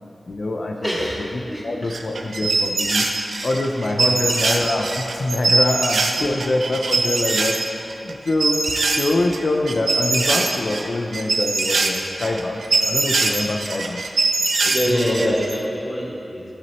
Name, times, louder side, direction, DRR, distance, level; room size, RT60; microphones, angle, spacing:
voice 1, 0.3-0.9 1.2-3.1 3.4-7.6 8.0-8.6 9.0-14.0 14.6-15.4, left 2 dB, 55° left, 1 dB, 0.5 m, -24 dB
voice 2, 0.8-1.2 1.5-1.9 4.0-4.1 6.2-6.3 14.7-16.4, equal, 5° left, -5 dB, 1.8 m, -25 dB
sound 1, 1.9-7.7 7.9-9.4 9.7-15.5, right 3 dB, 85° right, 0.7 m, -22 dB
14.5 x 6.1 x 3.0 m, 2.8 s
wide cardioid pair, 115°, 0 cm